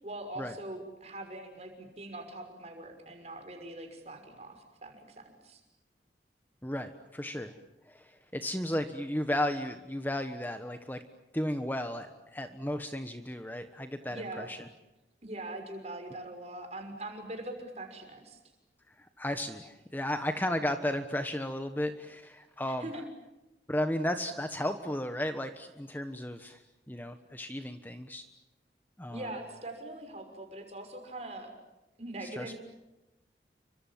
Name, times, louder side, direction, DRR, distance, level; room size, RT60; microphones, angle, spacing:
voice 1, 0.0-5.6 14.1-14.5 15.2-18.4 22.6-23.0 29.1-31.5 32.0-32.6, right 1 dB, 40° right, 5 dB, 6.1 m, -42 dB
voice 2, 6.6-7.5 7.9-11.0 11.3-14.7 19.0-22.9 23.7-26.6 26.9-28.3 29.0-29.3 32.2-32.5, left 1 dB, 10° left, 8 dB, 1.2 m, -34 dB
30.0 x 25.5 x 7.5 m, 1.0 s
head